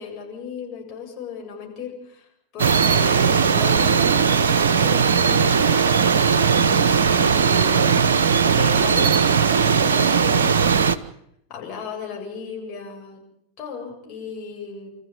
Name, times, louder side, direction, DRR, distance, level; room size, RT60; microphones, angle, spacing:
voice 1, 0.0-8.2 8.4-9.4 9.8-10.8 11.5-13.2 13.6-14.9, left 6 dB, 35° left, -1 dB, 8.0 m, -36 dB
sound 1, 2.6-11.0, right 6 dB, 65° right, 0.9 m, -18 dB
27.0 x 14.0 x 9.0 m, 0.76 s
figure-of-eight pair, 90°, 0 cm